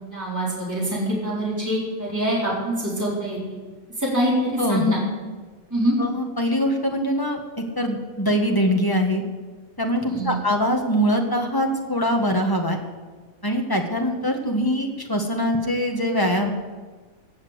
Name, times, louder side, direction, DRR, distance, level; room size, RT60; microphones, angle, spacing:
voice 1, 0.1-3.6 4.0-5.0 5.7-6.0 10.1-10.3, equal, 10° right, -6 dB, 4.0 m, -24 dB
voice 2, 4.6-4.9 6.0-7.4 7.8-9.2 9.8-12.8 13.4-16.5, equal, 15° left, 2 dB, 1.6 m, -23 dB
16.5 x 7.4 x 8.2 m, 1.4 s
omnidirectional pair, 1.5 m